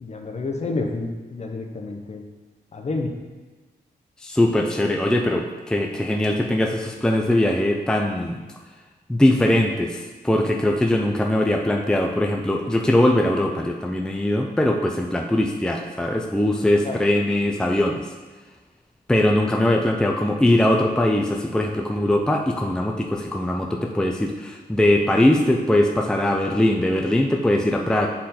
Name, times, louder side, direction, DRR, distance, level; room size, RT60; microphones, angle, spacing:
voice 1, 0.0-2.2 2.7-3.1 16.9-17.0, left 3 dB, 40° left, 2 dB, 0.8 m, -29 dB
voice 2, 4.2-8.4 9.1-18.0 19.1-28.1, left 1 dB, 5° left, 2 dB, 0.5 m, -21 dB
7.4 x 3.9 x 4.3 m, 1.3 s
wide cardioid pair, 105°, 17 cm